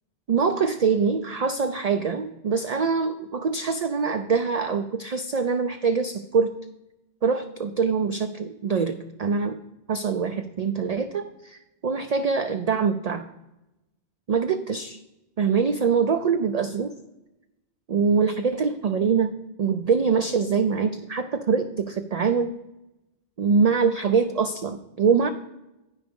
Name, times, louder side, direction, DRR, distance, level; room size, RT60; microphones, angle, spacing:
voice 1, 0.3-6.5 7.2-9.6 9.9-13.3 14.3-15.0 15.4-16.9 17.9-22.5 23.4-25.3, right 5 dB, 55° right, 8 dB, 0.4 m, -24 dB
10.0 x 4.9 x 5.1 m, 0.95 s
omnidirectional pair, 1.1 m